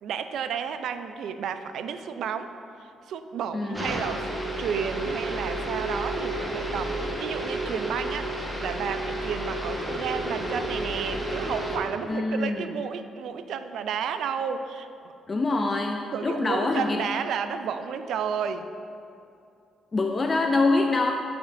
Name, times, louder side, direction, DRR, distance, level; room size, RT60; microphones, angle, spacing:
voice 1, 0.0-2.5 2.8-15.1 16.1-18.7, right 7 dB, 75° right, 10 dB, 0.3 m, -32 dB
voice 2, 3.5-4.0 12.1-12.7 15.3-17.0 19.9-21.1, left 3 dB, 30° left, 3 dB, 0.3 m, -25 dB
sound 1, 3.7-11.8, right 1 dB, 10° right, 1.2 m, -31 dB
11.5 x 4.2 x 2.6 m, 2.6 s
cardioid pair, 90°, 0 cm